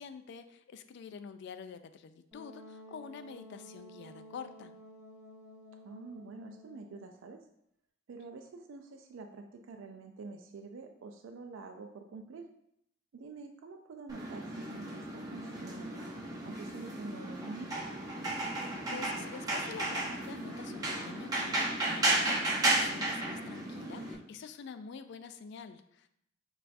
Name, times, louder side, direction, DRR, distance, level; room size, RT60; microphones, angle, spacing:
voice 1, 0.0-4.7 18.9-26.1, left 6 dB, 60° left, 10 dB, 0.3 m, -47 dB
Wind instrument woodwind instrument, 2.3-7.1, equal, 5° right, 1.4 m, -53 dB
voice 2, 5.8-7.4 8.1-12.5 13.1-17.9, right 3 dB, 75° right, 5 dB, 0.4 m, -47 dB
sound 1, 14.1-24.1, right 2 dB, 20° right, 0.8 m, -34 dB
6.6 x 2.4 x 2.5 m, 0.74 s
head